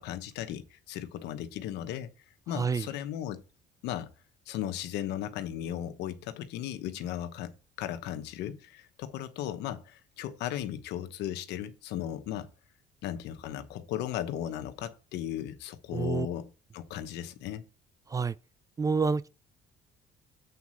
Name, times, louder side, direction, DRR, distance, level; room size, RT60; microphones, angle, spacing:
voice 1, 0.0-2.1 2.5-3.4 3.8-4.1 4.5-7.5 7.8-12.5 13.0-17.6, left 11 dB, 85° left, 1.0 m, -36 dB
voice 2, 2.5-2.9 15.9-16.3 18.1-18.3 18.8-19.3, right 5 dB, 20° right, 0.3 m, -28 dB
8.2 x 4.2 x 6.2 m
cardioid pair, 110°, 17 cm